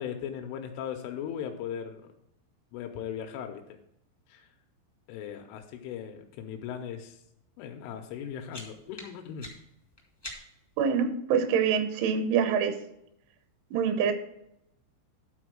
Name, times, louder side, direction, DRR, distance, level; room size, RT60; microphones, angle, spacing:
voice 1, 0.0-2.0 2.7-3.6 4.3-4.5 5.1-7.2 7.6-9.5, left 8 dB, 90° left, 4 dB, 3.3 m, -38 dB
sound 1, 8.1-10.8, left 1 dB, 40° left, 0.3 m, -46 dB
voice 2, 10.8-12.8 13.7-14.1, right 7 dB, 85° right, 9 dB, 3.5 m, -25 dB
12.0 x 4.3 x 6.2 m, 0.79 s
omnidirectional pair, 5.4 m